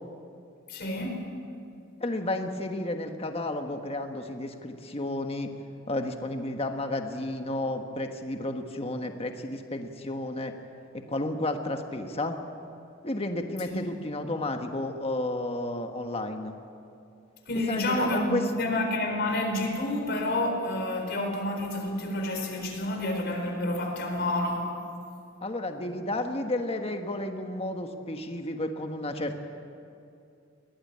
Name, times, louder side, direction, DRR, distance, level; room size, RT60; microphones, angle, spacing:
voice 1, 0.7-1.3 13.7-13.8 17.5-24.7, left 1 dB, 55° left, 3 dB, 4.2 m, -29 dB
voice 2, 2.0-5.5 5.9-10.5 11.1-12.3 13.0-16.5 17.7-18.4 25.4-29.4, left 1 dB, 30° left, 5 dB, 1.4 m, -32 dB
22.0 x 18.0 x 8.7 m, 2.6 s
head